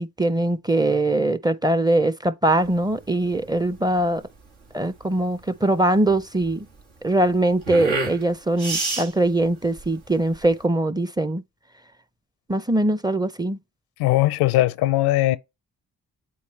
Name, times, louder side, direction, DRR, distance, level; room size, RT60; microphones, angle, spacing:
voice 1, 0.0-4.2 4.7-6.7 7.0-11.4 12.5-13.6, right 1 dB, 10° right, 0.5 m, -22 dB
sound 1, 2.6-10.6, right 3 dB, 80° right, 1.8 m, -32 dB
voice 2, 14.0-15.4, left 16 dB, 85° left, 0.5 m, -19 dB
8.5 x 4.1 x 3.2 m
hypercardioid pair, 40°, 38 cm